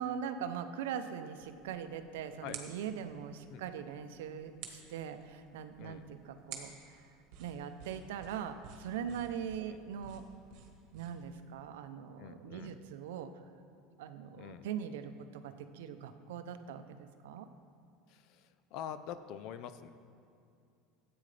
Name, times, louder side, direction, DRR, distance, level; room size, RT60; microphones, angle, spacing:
voice 1, 0.0-7.1 7.4-10.2 10.9-13.3 14.0-17.5, right 8 dB, 90° right, 9 dB, 0.6 m, -41 dB
sound 1, 1.4-11.4, right 6 dB, 65° right, 1.4 m, -53 dB
voice 2, 5.8-6.1 9.6-9.8 12.2-12.8 14.4-14.7 18.1-19.9, left 9 dB, 60° left, 12 dB, 0.5 m, -45 dB
13.5 x 8.7 x 3.3 m, 2.4 s
supercardioid pair, 135°, 0 cm